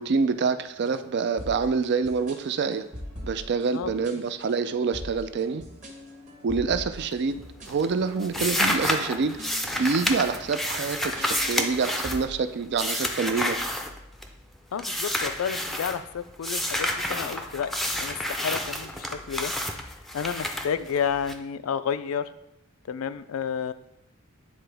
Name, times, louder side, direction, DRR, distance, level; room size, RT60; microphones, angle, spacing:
voice 1, 0.0-2.8 3.2-5.6 6.4-7.4 7.7-13.6, right 5 dB, 55° right, 11 dB, 0.4 m, -26 dB
sound 1, 0.8-12.3, equal, 35° right, 1.2 m, -44 dB
voice 2, 3.7-4.2 14.7-19.5 19.9-22.3 22.9-23.7, left 7 dB, 80° left, 13 dB, 0.4 m, -31 dB
sound 2, 7.0-7.4 7.7-14.4 14.8-16.0 16.4-21.3, left 1 dB, ahead, 0.5 m, -29 dB
9.6 x 3.8 x 3.4 m, 0.83 s
head